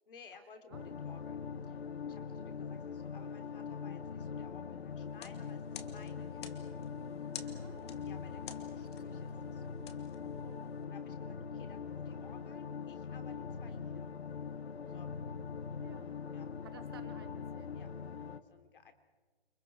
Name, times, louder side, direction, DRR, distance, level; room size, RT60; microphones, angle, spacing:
voice 1, 0.1-6.8 7.7-9.8 10.8-14.1 14.9-15.1 16.3-16.5 17.7-17.9 18.1-18.9, left 5 dB, 60° left, 6 dB, 3.7 m, -58 dB
sound 1, 0.7-18.4, left 6 dB, 85° left, 1.8 m, -42 dB
sound 2, 5.0-10.8, left 9 dB, 25° left, 1.6 m, -52 dB
voice 2, 7.4-8.0 10.2-10.9 11.4-11.5 14.8-15.1 15.4-15.5 15.8-16.1 16.6-17.8, right 8 dB, 25° right, 9 dB, 1.1 m, -57 dB
29.5 x 28.0 x 4.7 m, 1.4 s
hypercardioid pair, 175°, 31 cm